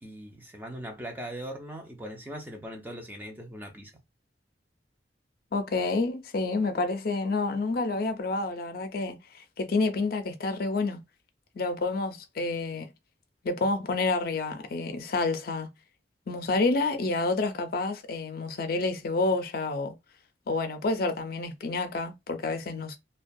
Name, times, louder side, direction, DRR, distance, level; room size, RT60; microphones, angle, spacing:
voice 1, 0.0-3.9, right 1 dB, 10° right, 0.4 m, -40 dB
voice 2, 5.5-11.0 11.6-12.9 13.4-15.7 16.3-20.0 20.5-23.0, left 3 dB, 55° left, 0.5 m, -29 dB
2.2 x 2.2 x 2.6 m
head